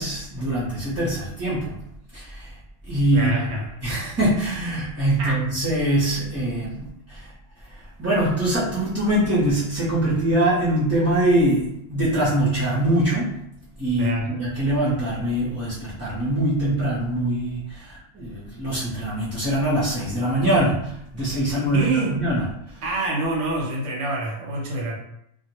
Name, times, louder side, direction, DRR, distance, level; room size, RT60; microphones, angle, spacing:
voice 1, 0.0-1.8 2.1-2.5 2.9-3.3 3.8-7.3 8.0-13.3 13.8-22.5, right 1 dB, 20° right, -11 dB, 0.5 m, -23 dB
voice 2, 3.1-3.8 5.2-5.4 14.0-14.4 21.7-22.2 22.8-25.0, right 2 dB, 90° right, -1 dB, 1.0 m, -26 dB
2.1 x 2.1 x 2.9 m, 0.75 s
omnidirectional pair, 1.2 m